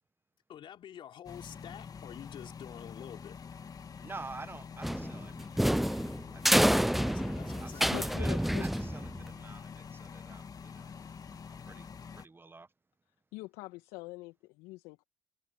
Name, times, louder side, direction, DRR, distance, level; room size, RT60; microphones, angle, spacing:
voice 1, 0.5-3.4 7.0-8.0, left 10 dB, 55° left, 3.7 m, -48 dB
sound 1, 1.3-12.3, left 6 dB, 35° left, 2.4 m, -46 dB
voice 2, 4.0-6.0 6.3-7.0 7.6-10.9 11.3-12.7, right 3 dB, 20° right, 1.5 m, -49 dB
sound 2, 4.8-9.3, equal, ahead, 0.4 m, -28 dB
voice 3, 7.9-8.6 13.3-15.0, left 21 dB, 75° left, 2.0 m, -43 dB
hypercardioid pair, 60°, 10 cm